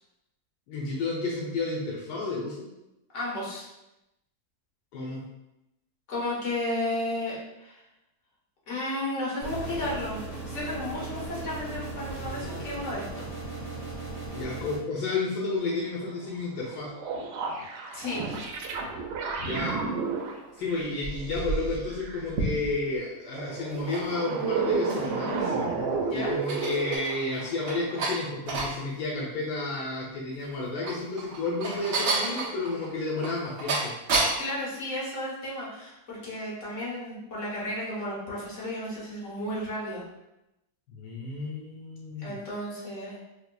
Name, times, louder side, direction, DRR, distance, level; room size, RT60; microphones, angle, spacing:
voice 1, 0.7-2.6 4.9-5.2 14.3-16.9 19.4-19.8 20.6-25.5 26.1-33.9 40.9-42.4, left 3 dB, 80° left, -3 dB, 1.2 m, -31 dB
voice 2, 3.1-3.7 6.1-7.8 8.7-13.3 17.9-18.3 26.0-26.3 34.4-40.0 42.2-43.2, left 1 dB, 50° left, -6 dB, 1.5 m, -33 dB
sound 1, 9.4-14.8, right 2 dB, 30° left, 1.3 m, -37 dB
sound 2, 16.7-22.2 23.3-27.0, right 4 dB, 90° right, 1.2 m, -31 dB
sound 3, 20.8-23.0 23.7-25.3 25.7-25.8 26.2-28.8 30.5-34.5, right 3 dB, 65° right, 0.9 m, -31 dB
5.6 x 2.1 x 2.2 m, 0.91 s
omnidirectional pair, 1.8 m